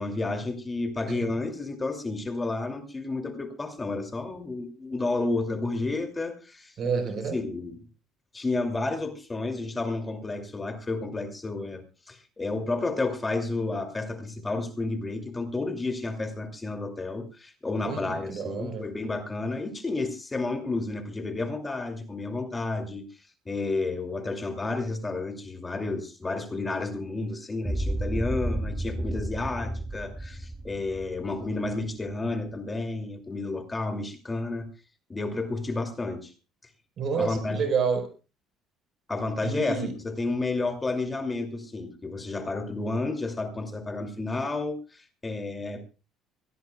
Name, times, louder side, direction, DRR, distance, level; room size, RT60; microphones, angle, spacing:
voice 1, 0.0-6.7 7.3-7.8 8.3-23.0 23.5-34.7 35.1-36.3 37.2-37.6 39.1-45.8, left 3 dB, 15° left, 5 dB, 2.6 m, -31 dB
voice 2, 6.8-7.4 17.8-18.8 37.0-38.1 39.4-39.9, right 5 dB, 50° right, 8 dB, 4.2 m, -29 dB
sound 1, 27.7-32.0, right 1 dB, 5° right, 0.9 m, -32 dB
23.5 x 17.0 x 2.3 m, 0.32 s
cardioid pair, 120°, 0 cm